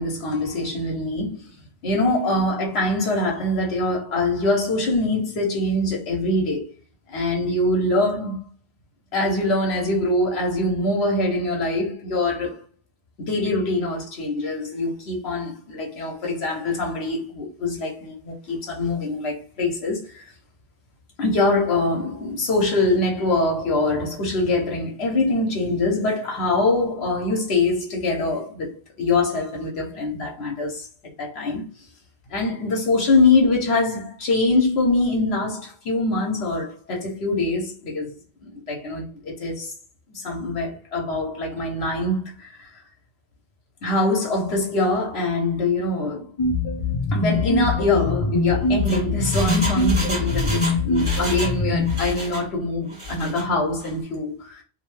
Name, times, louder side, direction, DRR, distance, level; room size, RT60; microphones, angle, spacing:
voice 1, 0.0-1.4 1.8-6.7 7.1-8.4 9.1-12.6 13.2-20.2 21.2-30.9 31.2-31.6 32.3-38.1 38.4-39.7 40.1-42.7 43.8-46.3 47.1-54.6, left 2 dB, 80° left, 1.0 m, -23 dB
sound 1, 46.4-52.0, left 3 dB, 55° left, 0.3 m, -23 dB
Engine, 48.6-51.6 51.8-52.5 52.9-53.4 53.8-53.9, equal, 30° right, 1.2 m, -30 dB
2.6 x 2.1 x 3.1 m
omnidirectional pair, 1.1 m